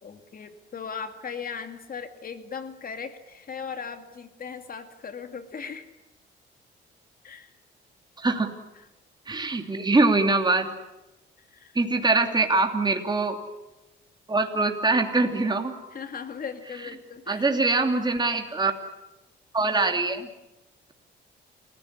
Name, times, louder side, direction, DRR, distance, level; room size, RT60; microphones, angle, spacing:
voice 1, 0.0-5.9 7.2-7.5 8.8-8.9 11.4-11.8 15.9-17.4, left 6 dB, 45° left, 7 dB, 2.4 m, -38 dB
voice 2, 8.2-8.5 9.3-10.7 11.7-13.4 14.3-15.8 17.3-18.7 19.5-20.3, right 3 dB, 20° right, 4 dB, 2.9 m, -23 dB
29.0 x 16.0 x 9.8 m, 1.0 s
cardioid pair, 90°, 20 cm